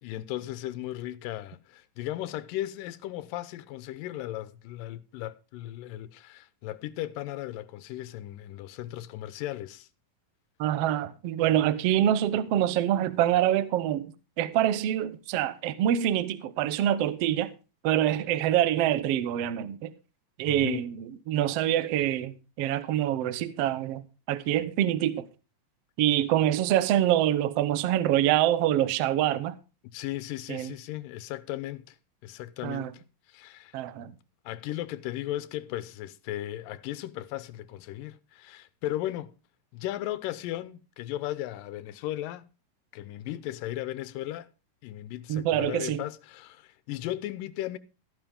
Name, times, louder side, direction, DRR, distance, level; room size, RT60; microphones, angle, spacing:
voice 1, 0.0-9.9 20.5-20.9 29.8-32.0 32.2-32.9 33.3-33.8 34.5-39.3 39.7-42.5 42.9-44.5 44.8-47.8, left 14 dB, 85° left, 2.4 m, -36 dB
voice 2, 10.6-17.5 17.8-19.9 20.4-25.3 26.0-29.5 30.5-30.7 32.6-32.9 33.7-34.1 45.3-46.0, right 11 dB, 70° right, 1.5 m, -26 dB
14.0 x 11.5 x 3.6 m
omnidirectional pair, 3.8 m